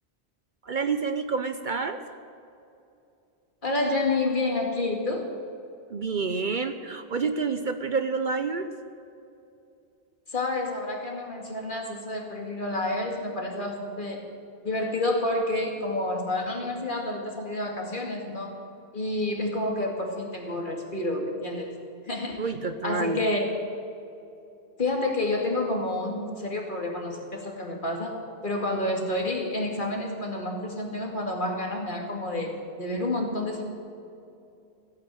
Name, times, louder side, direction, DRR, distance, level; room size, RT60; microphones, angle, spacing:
voice 1, 0.6-2.0 5.9-8.7 22.4-23.2, right 4 dB, 50° right, 8 dB, 0.8 m, -28 dB
voice 2, 3.6-5.3 10.3-14.2 14.6-18.6 18.9-21.7 22.0-22.4 22.8-23.5 24.8-33.6, left 2 dB, 50° left, 1 dB, 2.4 m, -29 dB
15.5 x 9.0 x 9.1 m, 2.6 s
omnidirectional pair, 1.1 m